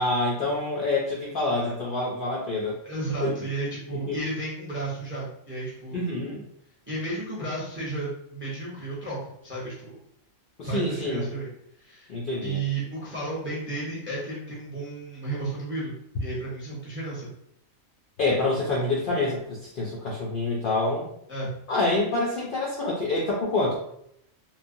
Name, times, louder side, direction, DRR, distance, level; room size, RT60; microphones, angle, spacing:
voice 1, 0.0-2.8 3.2-3.3 4.1-4.2 5.9-6.4 10.6-11.3 12.1-12.6 18.2-21.1 21.7-23.8, left 2 dB, 60° left, -4 dB, 0.6 m, -27 dB
voice 2, 2.8-6.1 6.9-9.2 9.4-10.0 10.6-11.5 11.8-12.1 12.4-15.9 16.2-17.3 21.3-21.5, right 2 dB, 15° right, -6 dB, 0.6 m, -33 dB
3.2 x 2.0 x 2.5 m, 0.73 s
omnidirectional pair, 1.4 m